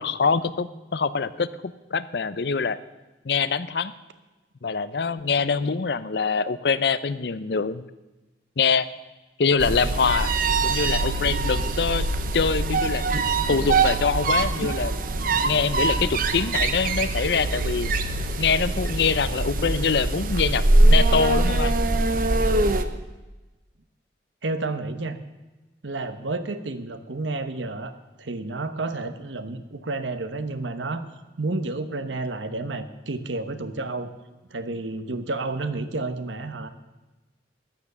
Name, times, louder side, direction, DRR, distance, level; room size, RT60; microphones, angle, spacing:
voice 1, 0.0-1.5 1.9-2.8 3.2-3.9 4.6-7.8 8.6-8.9 9.4-10.3 10.6-12.1 12.3-13.0 13.5-15.0 15.4-17.9 18.4-21.8, left 5 dB, 65° left, 15 dB, 0.5 m, -24 dB
sound 1, 9.6-22.8, right 2 dB, 50° right, 0.8 m, -23 dB
voice 2, 24.4-25.2 25.8-27.9 28.2-31.0 31.4-34.1 34.5-36.7, right 2 dB, 90° right, 10 dB, 1.0 m, -30 dB
13.0 x 9.7 x 6.8 m, 1.1 s
head